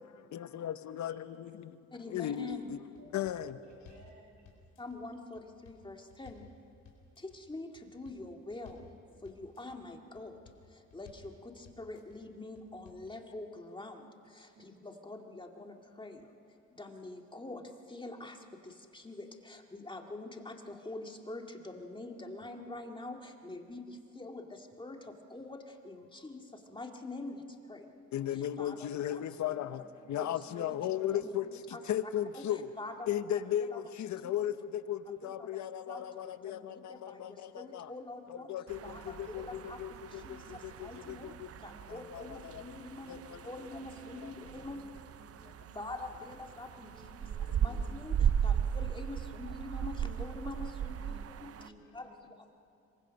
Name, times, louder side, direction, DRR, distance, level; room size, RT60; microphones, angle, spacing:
voice 1, 0.3-1.8 2.1-3.6 28.1-29.8 30.1-32.7 33.1-37.9 38.3-41.5 41.9-42.8 43.1-43.4 44.2-44.3 47.5-47.6 48.2-48.3, left 11 dB, 70° left, 1.0 m, -36 dB
voice 2, 1.9-2.6 4.8-6.5 7.2-10.4 10.7-27.9 28.3-29.2 30.1-30.8 31.1-31.4 31.7-31.8 32.3-33.8 34.2-34.5 35.2-38.5 38.8-41.3 41.6-44.8 45.7-47.2 47.6-52.1, left 2 dB, 15° left, 2.2 m, -45 dB
sound 1, 2.4-2.6 2.9-4.1 4.4-5.0 5.4-6.5 6.8-7.4 7.8-8.2 8.5-8.9 9.2-9.8 10.1-10.6 10.9-11.3 11.6-12.2 12.5-13.1, left 6 dB, 90° left, 4.2 m, -57 dB
voice 3, 3.6-4.4 14.5-14.8 29.8-30.1 30.8-31.3 38.7-39.5 39.9-40.6 41.0-41.2 41.6-42.3 43.1-43.3 43.8-43.9 44.3-44.8 45.1-45.9 46.7-48.0 48.4-48.6 50.9-51.2 51.5-51.9, right 1 dB, 75° right, 5.9 m, -59 dB
sound 2, 38.7-51.7, right 8 dB, 50° right, 0.7 m, -37 dB
26.5 x 23.0 x 5.4 m
cardioid pair, 90°, 30 cm